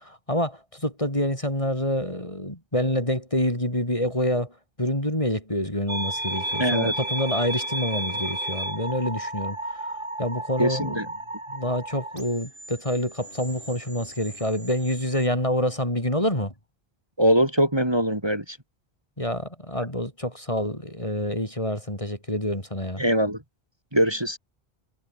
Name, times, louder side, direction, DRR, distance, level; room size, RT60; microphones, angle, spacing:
voice 1, 0.0-9.9 10.2-11.0 11.5-16.5 19.2-23.0, left 1 dB, 30° left, 7.1 m, -27 dB
sound 1, 5.9-15.3, right 1 dB, 55° right, 5.9 m, -33 dB
voice 2, 6.6-6.9 10.6-11.1 17.2-18.6 23.0-23.4 23.9-24.4, equal, 25° right, 4.7 m, -22 dB
omnidirectional pair, 1.0 m